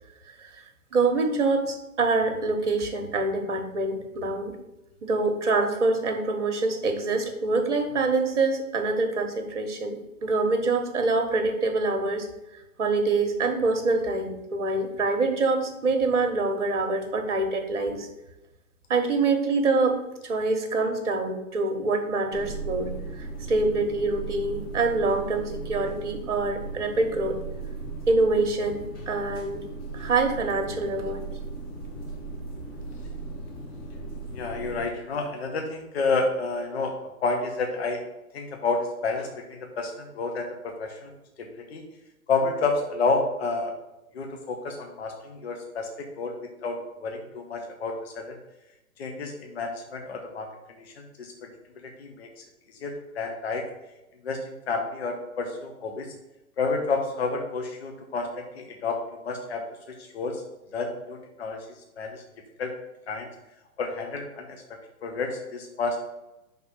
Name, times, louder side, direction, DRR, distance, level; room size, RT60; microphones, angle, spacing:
voice 1, 0.9-4.6 5.0-12.3 12.8-18.1 18.9-27.4 28.1-29.7 29.9-31.2, right 3 dB, 55° right, 5 dB, 1.3 m, -25 dB
sound 1, 22.3-34.9, right 3 dB, 25° left, 1.6 m, -37 dB
voice 2, 34.3-36.9 37.2-38.0 38.3-41.1 41.4-41.8 42.3-43.7 44.1-46.3 46.6-48.4 49.0-50.5 51.0-51.3 51.8-52.3 52.8-53.6 54.2-56.1 56.6-59.0 59.2-59.6 60.1-60.4 60.7-61.6 62.0-62.2 62.6-62.7 63.1-63.3 63.8-64.6 65.0-66.0, left 3 dB, 45° left, 3 dB, 1.0 m, -30 dB
5.6 x 3.8 x 5.9 m, 0.96 s
figure-of-eight pair, 125°, 43 cm